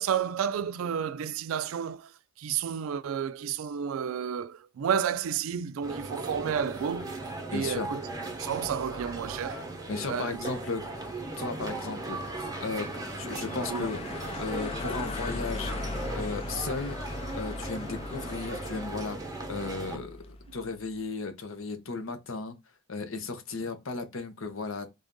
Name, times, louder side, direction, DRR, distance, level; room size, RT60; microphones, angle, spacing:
voice 1, 0.0-2.1 2.4-7.1 7.5-8.1 8.4-9.7 10.1-10.4 13.7-13.9, right 8 dB, 90° right, 0.3 m, -31 dB
sound 1, 5.8-20.0, right 2 dB, 20° right, 0.9 m, -38 dB
voice 2, 7.5-7.9 9.9-14.0 14.4-15.8 16.1-17.0 17.3-19.2 19.5-22.6 22.9-24.9, left 4 dB, 80° left, 0.8 m, -35 dB
sound 2, 8.1-15.8, left 2 dB, 55° left, 2.4 m, -55 dB
sound 3, 8.5-20.6, left 3 dB, 30° left, 0.4 m, -40 dB
3.5 x 2.6 x 3.6 m
head